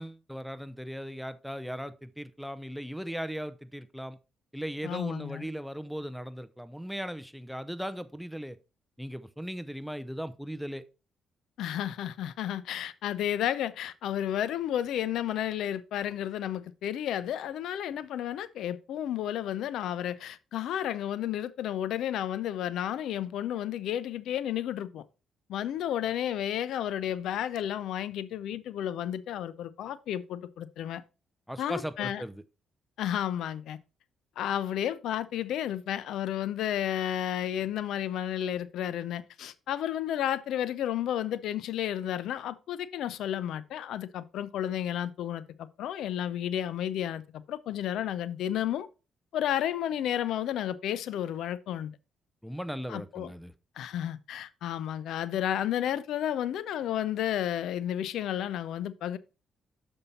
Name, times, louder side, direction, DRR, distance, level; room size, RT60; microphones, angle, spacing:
voice 1, 0.0-4.2 4.5-8.6 9.0-10.8 31.5-32.4 52.4-53.5, equal, ahead, 0.6 m, -38 dB
voice 2, 4.8-5.5 11.6-25.0 25.5-31.0 31.6-32.2 33.0-33.8 34.4-48.9 49.3-51.9 52.9-53.3 53.8-59.2, left 11 dB, 80° left, 0.5 m, -32 dB
6.9 x 5.4 x 4.2 m
cardioid pair, 90°, 0 cm